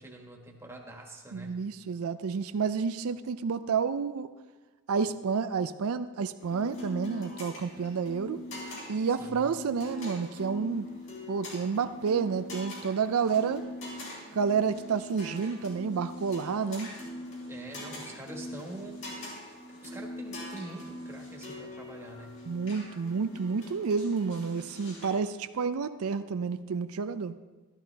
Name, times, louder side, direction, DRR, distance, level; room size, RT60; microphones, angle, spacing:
voice 1, 0.0-1.6 9.2-9.5 17.5-19.0 19.8-22.4, right 1 dB, 10° right, 0 dB, 1.5 m, -45 dB
voice 2, 1.3-4.3 4.9-8.4 8.9-10.9 11.3-13.6 14.3-16.9 22.5-27.3, right 5 dB, 90° right, 11 dB, 0.4 m, -30 dB
sound 1, 6.4-25.1, left 1 dB, 60° left, 4.5 m, -42 dB
13.0 x 13.0 x 3.4 m, 1.2 s
head